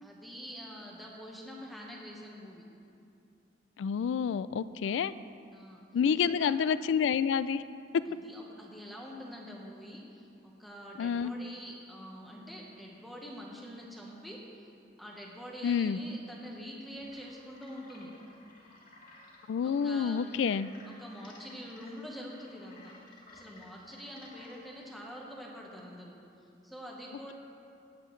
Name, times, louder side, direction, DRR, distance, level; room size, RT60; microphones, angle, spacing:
voice 1, 0.0-2.6 5.5-5.8 6.2-6.5 8.0-14.7 15.0-18.1 19.6-20.2 21.0-26.2 26.6-27.3, equal, ahead, -3 dB, 1.0 m, -46 dB
voice 2, 3.8-5.1 5.9-7.6 11.0-11.3 15.6-16.0 19.5-20.7, left 7 dB, 80° left, 16 dB, 0.3 m, -28 dB
sound 1, 16.9-24.8, left 2 dB, 50° left, 1.9 m, -56 dB
18.0 x 7.7 x 3.2 m, 2.5 s
head